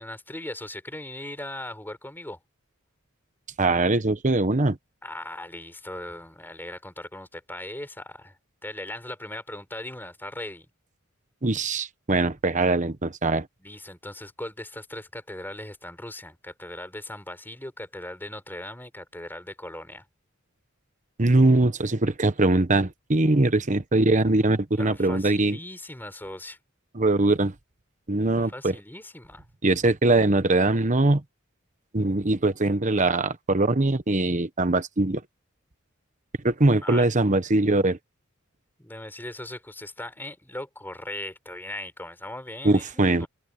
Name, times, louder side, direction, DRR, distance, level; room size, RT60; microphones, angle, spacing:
voice 1, 0.0-2.4 5.0-10.7 13.6-20.0 24.8-26.6 28.4-29.5 36.8-37.1 38.8-43.3, left 1 dB, 10° left, 4.6 m, -39 dB
voice 2, 3.6-4.8 11.4-13.5 21.2-25.6 26.9-27.5 28.1-28.7 29.6-31.2 31.9-35.2 36.4-38.0 42.6-43.3, right 2 dB, 35° right, 1.2 m, -22 dB
head